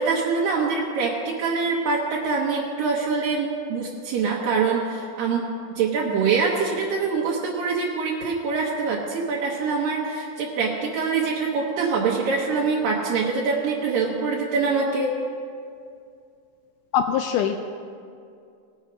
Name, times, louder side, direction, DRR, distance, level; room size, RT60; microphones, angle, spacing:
voice 1, 0.0-5.5 5.8-15.1, right 4 dB, 75° right, -3 dB, 2.6 m, -24 dB
voice 2, 16.9-17.6, left 8 dB, 85° left, 6 dB, 1.8 m, -22 dB
19.0 x 6.6 x 5.1 m, 2.4 s
omnidirectional pair, 4.2 m